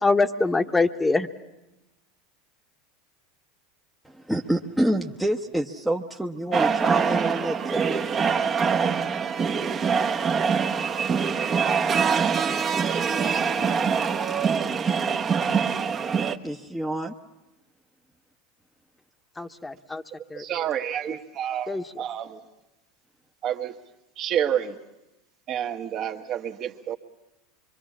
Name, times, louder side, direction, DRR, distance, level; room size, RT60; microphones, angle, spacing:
voice 1, 0.0-1.3 19.4-20.0 20.3-20.4 21.7-21.8, left 3 dB, 15° left, 8 dB, 1.2 m, -24 dB
voice 2, 4.0-8.1 16.4-17.1, right 1 dB, 5° right, 1 dB, 1.0 m, -27 dB
sound 1, 6.5-16.4, right 6 dB, 30° right, 1.1 m, -24 dB
voice 3, 20.3-21.7 22.0-22.4 23.4-23.7 24.2-24.8 25.5-27.0, right 10 dB, 45° right, 6 dB, 1.5 m, -29 dB
25.5 x 23.5 x 7.4 m, 0.96 s
hypercardioid pair, 100°, 0 cm